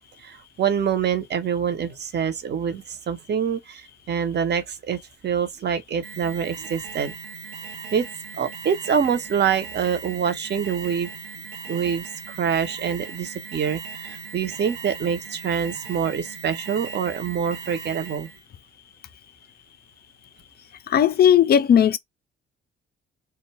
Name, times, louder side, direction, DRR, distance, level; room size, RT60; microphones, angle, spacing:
voice 1, 0.2-7.1 7.9-8.1 8.4-11.1 11.7-18.3, right 7 dB, 35° right, 0.7 m, -25 dB
Alarm, 6.0-18.4, right 5 dB, 80° right, 0.6 m, -38 dB
voice 2, 20.9-22.0, left 9 dB, 35° left, 0.4 m, -16 dB
2.3 x 2.1 x 3.2 m
hypercardioid pair, 50°, 29 cm